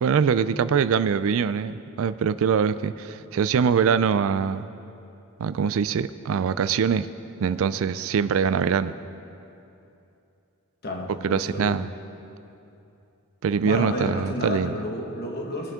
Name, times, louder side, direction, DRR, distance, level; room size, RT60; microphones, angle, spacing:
voice 1, 0.0-4.7 5.4-7.1 7.4-8.9 11.2-11.9 13.4-14.8, right 6 dB, 65° right, 14 dB, 0.3 m, -23 dB
voice 2, 10.8-11.8 13.6-15.7, left 1 dB, 45° left, 1 dB, 1.6 m, -31 dB
20.5 x 8.9 x 3.6 m, 2.7 s
head